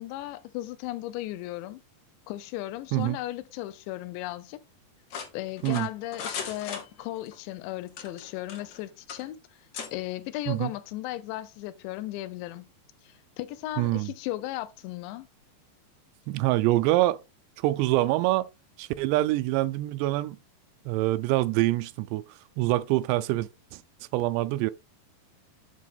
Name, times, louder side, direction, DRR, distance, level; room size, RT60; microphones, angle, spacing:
voice 1, 0.0-1.8 2.3-4.6 5.3-9.4 9.9-12.7 13.0-15.3, left 16 dB, 85° left, 2.9 m, -36 dB
sound 1, 5.1-7.3 7.9-8.8 9.1-9.2 9.7-9.9, left 6 dB, 65° left, 1.8 m, -37 dB
voice 2, 13.8-14.1 16.3-17.2 17.6-18.5 18.8-20.4 20.9-22.2 22.6-23.8 24.1-24.7, right 17 dB, 85° right, 2.6 m, -25 dB
8.3 x 5.6 x 3.6 m
omnidirectional pair, 5.1 m